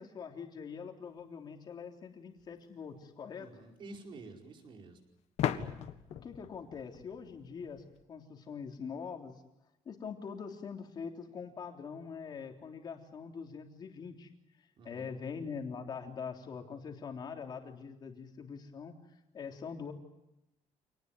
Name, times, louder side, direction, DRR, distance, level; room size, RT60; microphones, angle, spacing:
voice 1, 0.0-3.5 6.2-9.4 9.8-14.3 14.8-18.9 19.3-19.9, left 6 dB, 35° left, 3 dB, 3.5 m, -43 dB
sound 1, 2.4-2.5 5.4-8.0, left 10 dB, 65° left, 1.7 m, -37 dB
voice 2, 3.4-5.0 14.8-15.2, right 3 dB, 45° right, 3 dB, 4.9 m, -50 dB
27.5 x 19.5 x 9.4 m, 0.90 s
cardioid pair, 170°, 12 cm